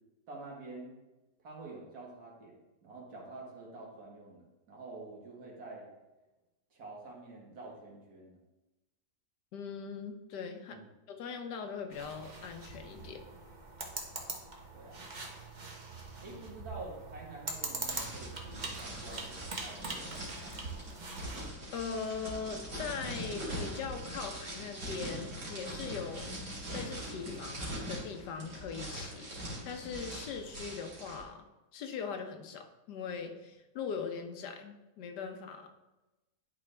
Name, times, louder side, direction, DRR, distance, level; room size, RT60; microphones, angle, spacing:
voice 1, 0.3-1.0 1.4-5.9 6.7-8.4 10.7-10.9 14.7-15.1 16.2-20.6, right 2 dB, 65° right, -2 dB, 2.1 m, -48 dB
voice 2, 9.5-10.8 11.1-13.2 21.7-31.4 31.7-35.7, left 6 dB, 90° left, 5 dB, 1.4 m, -41 dB
sound 1, 11.9-21.5, right 3 dB, 35° right, 0.8 m, -43 dB
sound 2, 17.8-31.2, right 1 dB, 85° right, 3.2 m, -42 dB
11.0 x 4.4 x 3.3 m, 1.0 s
omnidirectional pair, 1.8 m